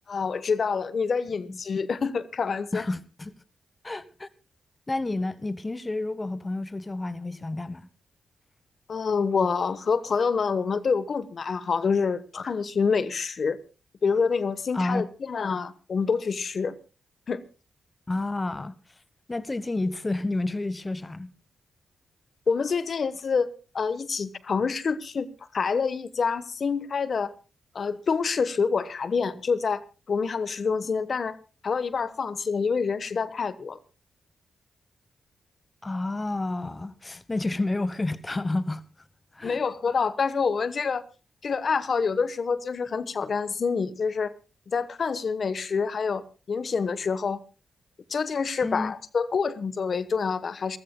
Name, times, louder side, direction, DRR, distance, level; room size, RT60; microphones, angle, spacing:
voice 1, 0.1-2.8 8.9-13.6 14.0-16.7 17.3-17.4 22.5-23.5 23.7-25.3 25.5-27.3 27.7-29.8 30.1-31.4 31.6-33.8 39.4-41.0 41.4-44.3 44.7-47.4 48.1-50.8, left 5 dB, 60° left, 1.1 m, -27 dB
voice 2, 2.7-3.3 3.8-4.3 4.9-7.9 14.7-15.1 18.1-18.7 19.3-21.3 35.8-38.8 39.3-39.6 48.6-48.9, left 2 dB, 30° left, 1.0 m, -30 dB
27.5 x 14.5 x 2.2 m
supercardioid pair, 45°, 0 cm